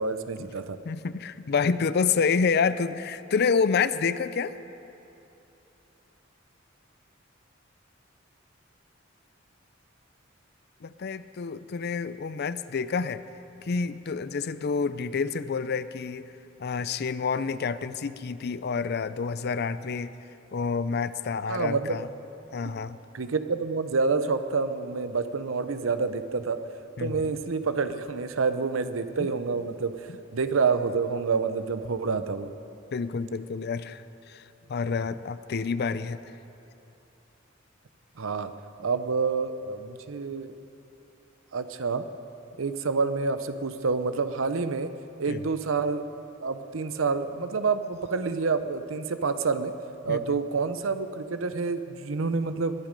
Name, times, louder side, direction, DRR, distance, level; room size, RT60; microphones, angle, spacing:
voice 1, 0.0-0.8 21.5-22.0 23.1-26.6 27.0-32.5 38.2-38.5 38.8-40.5 41.5-42.0 42.6-44.9 45.2-46.0 46.4-49.7 50.0-52.7, right 4 dB, 85° right, 11 dB, 0.7 m, -28 dB
voice 2, 0.9-4.6 10.8-13.2 13.6-16.3 16.6-20.1 20.5-22.1 22.5-23.0 27.0-27.3 29.2-29.3 32.9-34.4 34.7-36.2 45.3-45.4 50.1-50.4, left 5 dB, 55° left, 14 dB, 0.5 m, -28 dB
20.0 x 10.5 x 5.2 m, 2.9 s
head